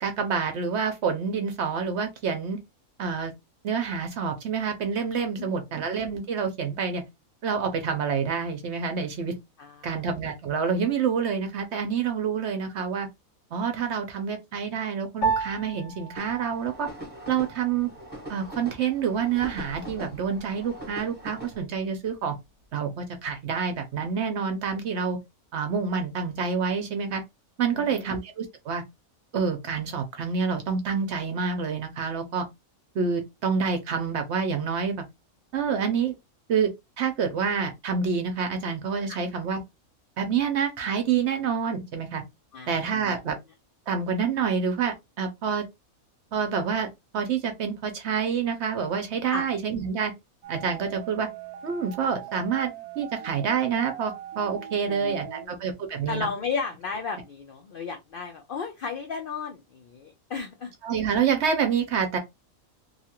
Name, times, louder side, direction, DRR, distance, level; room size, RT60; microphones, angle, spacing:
voice 1, 0.0-2.6 3.0-3.3 3.6-7.0 7.4-9.3 9.8-13.1 13.5-16.9 17.3-17.9 18.3-22.3 22.7-25.2 25.5-27.2 27.6-28.8 29.3-32.5 32.9-35.0 35.5-36.1 36.5-36.7 37.0-39.6 40.2-42.2 42.7-43.4 43.9-45.6 46.3-50.1 50.5-51.3 51.6-52.7 53.0-56.3 60.8-62.2, right 6 dB, 60° right, 0.8 m, -27 dB
voice 2, 9.6-10.0 27.7-28.1 39.1-39.2 42.5-42.9 49.3-49.4 54.9-55.6 56.1-60.7, left 5 dB, 80° left, 0.5 m, -34 dB
Piano, 15.2-24.8, right 5 dB, 65° left, 0.9 m, -37 dB
sound 1, 16.2-21.6, right 1 dB, 5° right, 1.1 m, -42 dB
sound 2, 50.4-55.5, right 11 dB, 85° right, 1.1 m, -41 dB
2.8 x 2.4 x 2.8 m
omnidirectional pair, 1.5 m